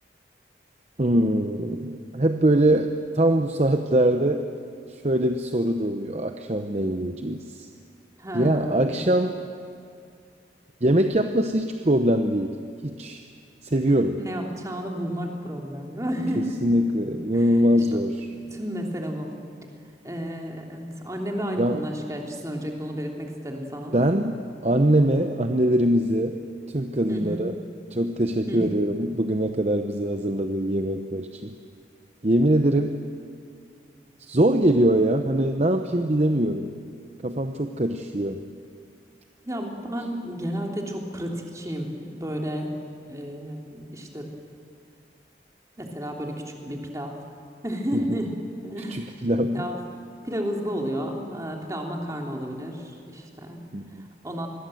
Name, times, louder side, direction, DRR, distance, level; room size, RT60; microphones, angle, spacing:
voice 1, 1.0-4.5 4.9-7.7 8.3-9.4 10.8-12.5 12.8-13.2 13.6-14.2 16.4-18.3 21.6-21.8 23.9-24.4 24.6-26.4 26.7-27.6 27.9-31.5 32.2-33.0 34.2-36.7 37.2-38.4 48.1-48.2 48.9-49.6 53.7-54.1, right 1 dB, 35° right, 6 dB, 0.9 m, -23 dB
voice 2, 8.2-9.0 14.2-16.5 17.3-18.0 18.3-19.3 20.0-24.0 27.1-27.5 28.5-28.7 39.4-42.7 43.1-44.3 45.8-47.1 47.6-49.1 49.5-49.8 50.2-53.7 54.2-54.5, equal, 20° right, 1 dB, 3.0 m, -32 dB
26.5 x 21.0 x 7.8 m, 2.4 s
head